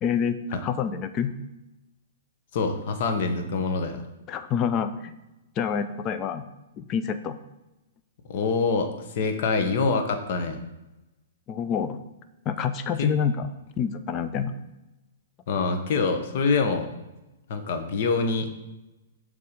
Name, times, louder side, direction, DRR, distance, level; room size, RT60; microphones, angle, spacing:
voice 1, 0.0-1.3 4.3-5.1 5.6-6.4 6.8-7.4 11.5-12.0 12.5-13.5 13.8-14.5, left 7 dB, 30° left, 10 dB, 0.5 m, -27 dB
voice 2, 2.5-4.0 8.3-10.6 13.0-13.1 15.5-16.9 17.5-18.5, left 4 dB, 55° left, 6 dB, 1.0 m, -25 dB
6.8 x 3.6 x 5.1 m, 0.98 s
hypercardioid pair, 130°, 0 cm